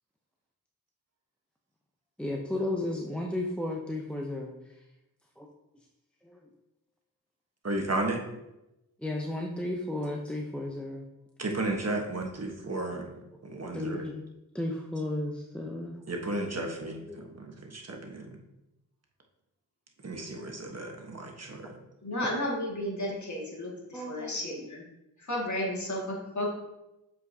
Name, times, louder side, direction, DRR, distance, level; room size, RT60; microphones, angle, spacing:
voice 1, 2.2-4.5 5.4-5.5 6.3-6.4 9.0-11.0 13.7-14.1 14.5-16.0 17.1-17.2 22.1-22.3 23.9-24.7, left 1 dB, 5° left, 0 dB, 0.7 m, -34 dB
voice 2, 7.6-8.2 11.4-13.1 13.4-14.0 16.1-18.4 20.0-21.7, right 2 dB, 45° right, 1 dB, 1.3 m, -33 dB
voice 3, 22.0-24.8 25.2-26.5, left 1 dB, 50° left, -3 dB, 2.0 m, -33 dB
7.5 x 4.7 x 2.8 m, 0.92 s
cardioid pair, 45°, 37 cm